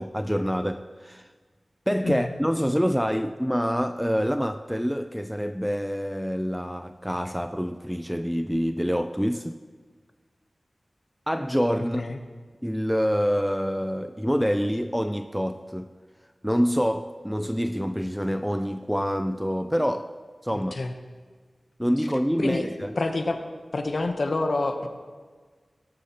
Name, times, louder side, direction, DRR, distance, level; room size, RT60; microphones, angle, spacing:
voice 1, 0.0-1.3 1.9-9.6 11.3-12.0 12.6-15.9 16.4-20.1 20.4-20.7 21.8-22.9, equal, ahead, 0.4 m, -26 dB
voice 2, 23.0-23.4 23.7-24.9, left 2 dB, 70° left, 0.9 m, -27 dB
18.0 x 10.5 x 3.0 m
wide cardioid pair, 60°, 0 cm